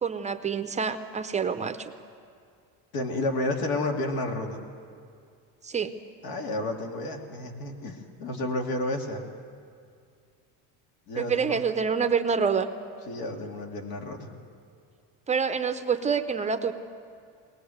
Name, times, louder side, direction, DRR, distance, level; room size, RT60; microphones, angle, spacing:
voice 1, 0.0-1.9 5.6-5.9 11.2-12.7 15.3-16.7, right 6 dB, 20° right, 8 dB, 0.6 m, -27 dB
voice 2, 2.9-4.6 6.2-9.2 11.1-11.6 13.1-14.3, left 2 dB, 75° left, 2 dB, 2.8 m, -31 dB
21.5 x 19.0 x 8.0 m, 2.3 s
cardioid pair, 150°, 36 cm